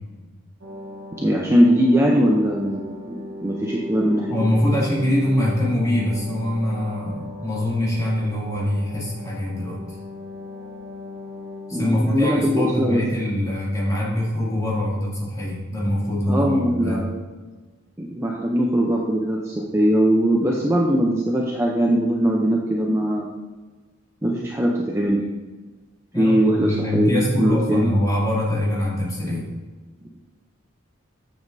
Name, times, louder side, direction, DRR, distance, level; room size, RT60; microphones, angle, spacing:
sound 1, 0.6-13.7 14.0-14.1, left 2 dB, 65° right, 1.2 m, -38 dB
voice 1, 1.2-4.5 11.7-13.0 16.3-17.0 18.0-23.3 24.2-25.2 26.2-27.9, equal, 10° right, -2 dB, 0.6 m, -20 dB
voice 2, 4.3-10.0 11.7-17.0 26.1-29.5, left 1 dB, 15° left, -7 dB, 2.4 m, -23 dB
9.3 x 7.3 x 2.7 m, 1.3 s
head